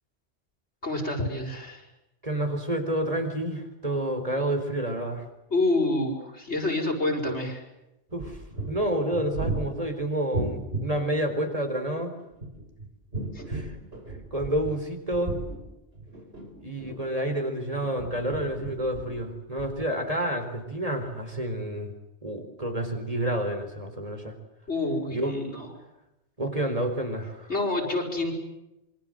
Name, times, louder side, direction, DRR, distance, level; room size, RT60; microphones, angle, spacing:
voice 1, 0.8-1.9 5.5-7.6 13.3-13.4 24.7-25.7 27.5-28.3, left 2 dB, 85° left, 3 dB, 6.0 m, -28 dB
voice 2, 2.2-5.3 8.1-8.4 8.7-12.1 13.5-15.4 16.6-21.9 22.2-24.3 25.1-25.4 26.4-27.5, right 1 dB, 35° right, 6 dB, 4.3 m, -29 dB
sound 1, 8.1-11.0 12.2-14.8 15.1-17.3 17.8-19.2 19.6-19.7, right 2 dB, 65° right, 4.9 m, -35 dB
27.0 x 24.5 x 7.9 m, 0.91 s
omnidirectional pair, 1.1 m